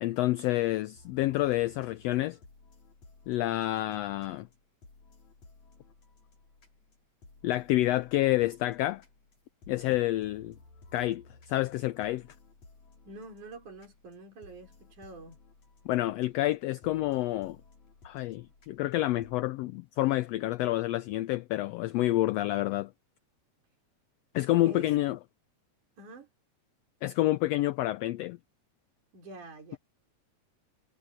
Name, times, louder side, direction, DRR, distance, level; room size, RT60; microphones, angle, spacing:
voice 1, 0.0-2.4 3.3-4.5 7.4-9.0 9.7-10.6 10.9-12.3 15.8-17.6 18.0-22.9 24.3-25.2 27.0-28.4, left 16 dB, 85° left, 1.4 m, -28 dB
sound 1, 0.9-19.5, left 3 dB, 70° left, 7.0 m, -57 dB
voice 2, 13.1-15.4 24.6-24.9 26.0-26.3 29.1-29.8, right 3 dB, 85° right, 6.5 m, -47 dB
omnidirectional pair, 3.4 m